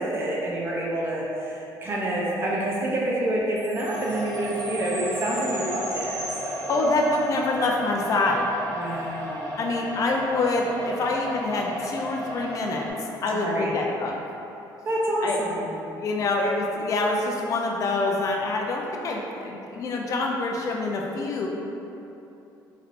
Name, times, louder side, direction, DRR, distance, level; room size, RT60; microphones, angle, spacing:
voice 1, 0.0-6.8 8.8-9.6 13.3-13.8 14.9-15.8, right 1 dB, 30° right, -4 dB, 0.5 m, -28 dB
Chime, 3.6-7.3, right 1 dB, 70° right, 1.4 m, -37 dB
sound 1, 3.8-12.9, equal, 25° left, 1.3 m, -34 dB
voice 2, 6.7-8.5 9.6-14.1 15.2-15.4 16.0-21.5, left 2 dB, 45° left, 0 dB, 0.5 m, -26 dB
4.0 x 3.2 x 2.5 m, 2.9 s
cardioid pair, 135°, 8 cm